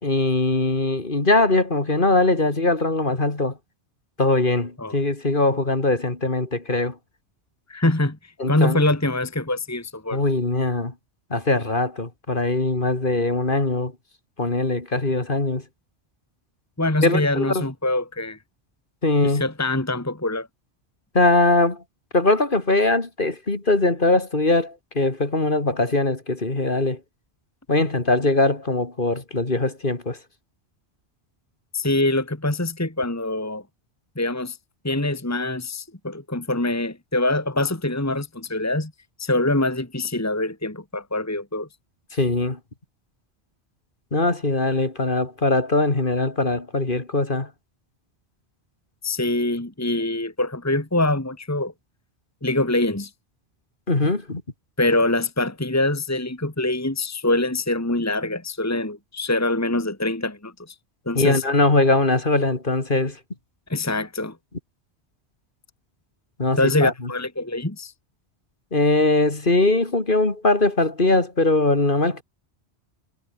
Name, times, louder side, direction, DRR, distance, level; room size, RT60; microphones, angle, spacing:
voice 1, 0.0-3.6 4.2-6.9 8.4-8.8 10.1-10.9 11.3-13.9 14.4-15.6 17.0-17.6 19.0-19.4 21.1-21.8 22.1-27.0 27.7-30.2 42.1-42.6 44.1-47.5 53.9-54.4 61.1-63.2 66.4-66.9 68.7-72.2, left 2 dB, 50° left, 3.1 m, -21 dB
voice 2, 7.7-8.2 8.5-10.2 16.8-18.4 19.2-20.5 31.7-33.6 34.2-34.6 34.8-38.9 39.2-41.7 49.0-51.7 52.4-53.1 54.8-60.7 61.1-61.4 63.7-64.4 66.6-67.9, left 2 dB, 15° left, 1.9 m, -24 dB
omnidirectional pair, 1.2 m